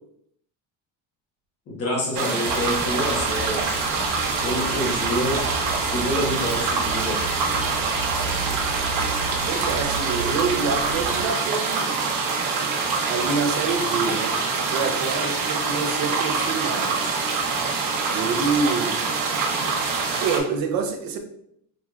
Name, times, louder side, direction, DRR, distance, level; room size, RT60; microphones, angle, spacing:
voice 1, 1.7-3.7 4.4-5.5 5.8-7.3, equal, 35° left, -1 dB, 1.1 m, -27 dB
sound 1, 2.1-20.4, right 4 dB, 80° right, 1.0 m, -25 dB
sound 2, 2.4-11.3, right 2 dB, 50° left, 1.4 m, -34 dB
voice 2, 9.5-12.0 13.1-14.4 14.7-17.2 18.1-19.1 20.2-21.2, right 4 dB, 55° right, 4 dB, 0.7 m, -27 dB
5.0 x 3.0 x 2.4 m, 0.71 s
cardioid pair, 160°, 41 cm